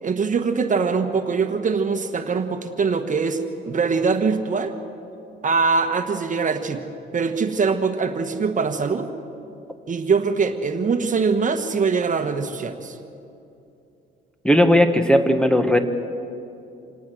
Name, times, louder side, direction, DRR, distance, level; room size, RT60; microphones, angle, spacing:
voice 1, 0.0-4.7 5.4-6.8 7.1-9.1 9.9-13.0, right 5 dB, 40° right, 7 dB, 1.4 m, -22 dB
voice 2, 14.4-15.8, equal, 5° left, 8 dB, 1.4 m, -16 dB
26.5 x 18.5 x 6.3 m, 2.7 s
cardioid pair, 90°, 20 cm